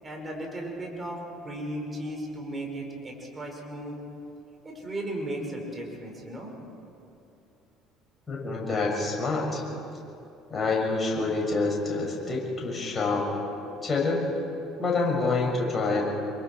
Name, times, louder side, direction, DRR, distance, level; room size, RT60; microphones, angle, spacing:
voice 1, 0.0-4.0 4.6-6.5, right 1 dB, 20° right, 0 dB, 5.3 m, -36 dB
voice 2, 8.3-9.6 10.5-13.3 13.8-14.3 14.8-16.0, left 3 dB, 25° left, -2 dB, 6.6 m, -27 dB
26.5 x 23.5 x 4.7 m, 2.8 s
figure-of-eight pair, 55°, 0 cm